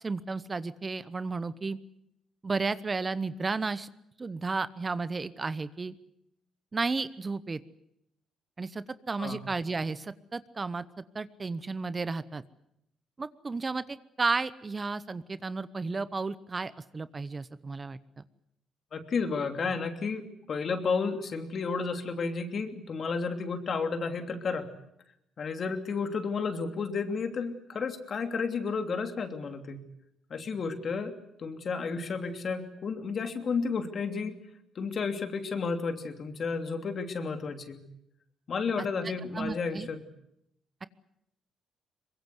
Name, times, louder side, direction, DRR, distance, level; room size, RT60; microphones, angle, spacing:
voice 1, 0.0-1.8 2.4-3.9 4.2-5.9 6.7-7.6 8.6-12.4 13.2-18.0 39.3-39.9, right 4 dB, 30° right, 15 dB, 0.9 m, -33 dB
voice 2, 18.9-24.7 25.4-29.9 30.3-34.4 34.7-37.9 38.5-40.0, left 5 dB, 50° left, 6 dB, 3.0 m, -32 dB
23.5 x 21.5 x 8.0 m, 0.77 s
cardioid pair, 90°, 0 cm